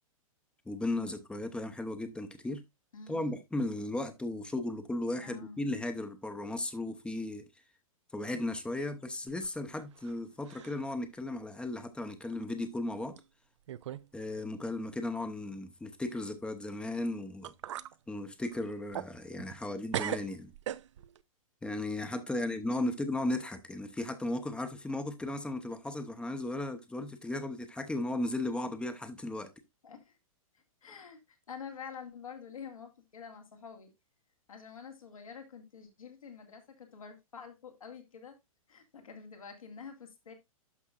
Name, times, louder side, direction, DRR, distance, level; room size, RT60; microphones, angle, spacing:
voice 1, 0.7-2.6 3.1-7.4 8.1-13.1 14.1-17.5 18.1-20.5 21.6-29.5, left 2 dB, 5° left, 0.8 m, -36 dB
voice 2, 2.9-3.4 5.2-5.6 22.3-22.5 29.8-30.2 30.5-33.9 34.5-38.4 38.7-40.3, left 6 dB, 70° left, 2.0 m, -48 dB
sound 1, 9.3-10.2 10.4-10.9 11.4-11.5 12.3-12.4 13.2-13.3 13.7-14.1 14.4-14.5 17.0-17.1 17.4-17.9 18.4-19.7 19.9-21.2, right 11 dB, 55° right, 0.5 m, -39 dB
12.0 x 5.4 x 2.4 m
figure-of-eight pair, 110°, 18 cm